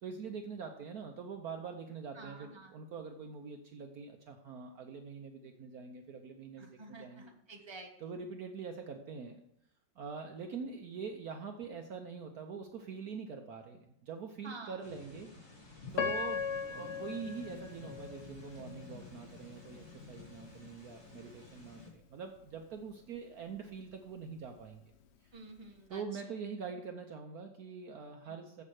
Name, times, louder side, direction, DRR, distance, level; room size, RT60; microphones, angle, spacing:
voice 1, 0.0-7.3 8.0-9.4 10.0-15.3 15.9-24.8 25.2-25.3 25.9-28.6, right 5 dB, 60° right, 5 dB, 1.2 m, -44 dB
voice 2, 2.1-2.7 6.6-8.1 14.4-14.9 25.3-26.2 28.2-28.4, right 3 dB, 15° right, 1 dB, 1.3 m, -50 dB
sound 1, 14.8-21.9, left 3 dB, 35° left, 3.1 m, -52 dB
Piano, 16.0-19.0 19.5-19.6 20.3-20.5, left 6 dB, 65° left, 0.6 m, -38 dB
7.7 x 7.5 x 6.4 m, 0.74 s
omnidirectional pair, 2.0 m